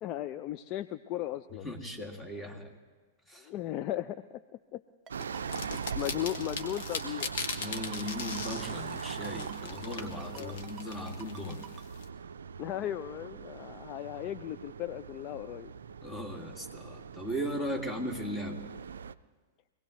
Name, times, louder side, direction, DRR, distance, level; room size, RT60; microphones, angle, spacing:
voice 1, 0.0-1.7 3.4-4.2 4.7-4.8 5.4-5.5 6.0-7.3 10.3-10.6 12.6-15.7, left 13 dB, 35° left, 13 dB, 0.4 m, -36 dB
voice 2, 1.6-2.7 3.3-3.5 6.1-6.2 7.5-11.6 16.0-18.6, equal, 10° left, 3 dB, 2.1 m, -37 dB
Ringtone, 5.1-11.8, right 9 dB, 25° right, 1.0 m, -49 dB
sound 1, 5.1-19.1, right 6 dB, 70° right, 0.4 m, -41 dB
sound 2, 5.2-12.0, left 5 dB, 55° left, 1.7 m, -40 dB
24.5 x 18.0 x 3.1 m, 1.4 s
figure-of-eight pair, 100°, 0 cm